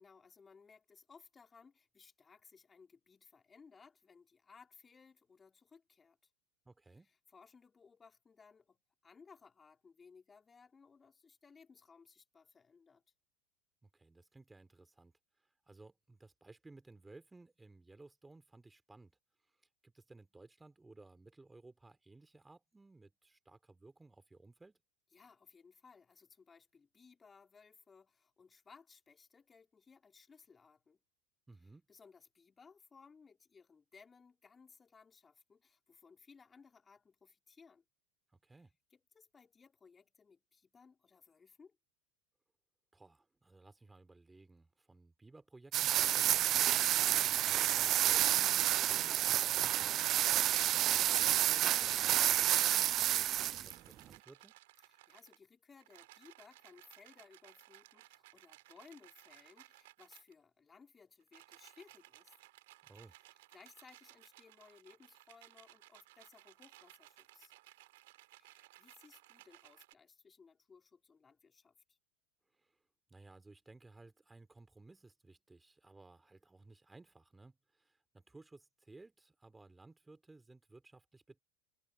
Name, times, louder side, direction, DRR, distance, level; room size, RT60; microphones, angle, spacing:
voice 1, 0.0-6.3 7.0-13.0 25.1-31.0 31.9-37.8 38.9-41.8 54.8-62.3 63.3-67.5 68.3-72.0, left 5 dB, 20° left, 4.8 m, -61 dB
voice 2, 6.6-7.1 13.8-15.1 15.7-19.1 19.8-24.8 31.5-31.9 38.4-38.7 42.9-46.5 46.8-50.1 50.6-54.5 62.8-63.1 72.5-72.8 73.1-81.4, right 2 dB, 10° right, 4.2 m, -59 dB
sound 1, 45.7-53.7, right 13 dB, 45° right, 0.3 m, -30 dB
sound 2, 51.5-52.0 53.2-55.4 55.8-60.3 61.2-69.9, right 19 dB, 70° right, 4.2 m, -60 dB
hypercardioid pair, 90°, 0 cm